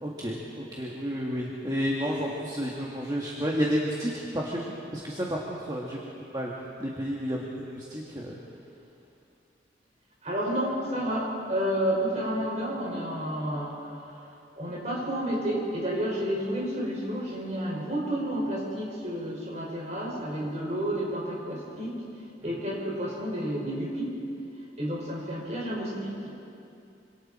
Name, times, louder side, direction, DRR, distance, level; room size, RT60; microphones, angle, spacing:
voice 1, 0.0-6.1 6.3-6.5 6.8-8.4, equal, 20° right, -4 dB, 1.9 m, -31 dB
voice 2, 10.2-22.0 22.4-24.2 24.8-26.3, equal, 40° right, -4 dB, 5.8 m, -31 dB
26.5 x 25.5 x 4.5 m, 2.7 s
head